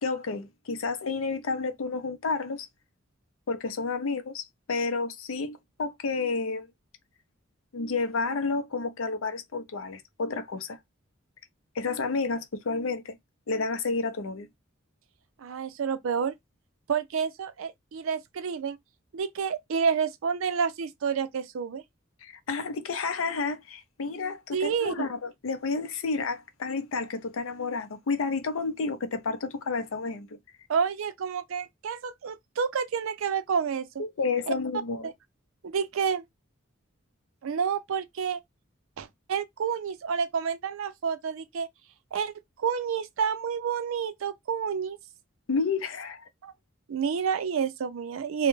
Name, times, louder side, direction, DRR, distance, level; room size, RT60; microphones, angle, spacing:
voice 1, 0.0-2.7 3.5-6.7 7.7-10.8 11.7-13.1 13.5-14.5 22.2-30.4 34.0-35.1 45.5-46.2, left 4 dB, 80° left, 0.5 m, -30 dB
voice 2, 15.4-16.3 16.9-18.8 19.1-21.8 24.5-25.1 30.7-34.0 34.5-34.6 35.6-36.2 37.4-38.4 39.0-41.7 42.1-42.3 42.6-45.0 46.4-46.5 46.9-48.5, right 6 dB, 75° right, 0.4 m, -29 dB
2.2 x 2.1 x 3.0 m
head